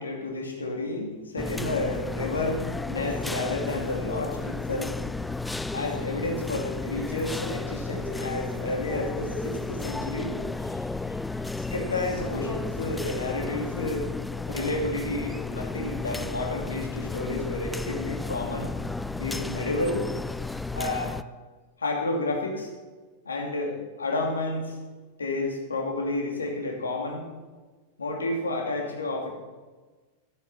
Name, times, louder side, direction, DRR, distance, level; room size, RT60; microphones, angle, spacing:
voice 1, 0.0-5.4 5.7-10.4 11.7-14.1 14.5-18.7 19.2-20.1 20.7-21.2 21.8-22.7 23.3-24.8 25.2-27.2 28.0-29.3, left 2 dB, 75° left, 1 dB, 2.5 m, -31 dB
sound 1, 1.4-21.2, left 3 dB, 5° left, 0.4 m, -33 dB
12.5 x 12.5 x 4.2 m, 1.3 s
figure-of-eight pair, 90°, 0 cm